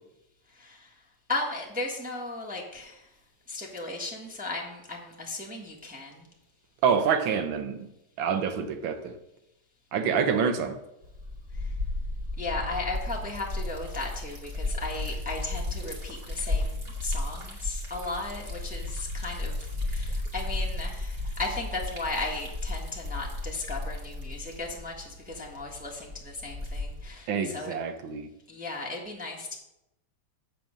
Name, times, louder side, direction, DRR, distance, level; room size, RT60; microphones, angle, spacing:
voice 1, 0.6-0.9 1.3-3.1 3.5-6.3 12.4-27.8 28.5-29.6, left 2 dB, 5° right, -1 dB, 1.1 m, -36 dB
voice 2, 6.8-7.9 8.2-9.1 9.9-10.8 27.3-28.3, right 6 dB, 85° right, 8 dB, 1.7 m, -26 dB
Liquid, 11.0-27.1, left 2 dB, 30° right, 1.8 m, -34 dB
7.8 x 7.6 x 5.0 m, 0.88 s
omnidirectional pair, 2.1 m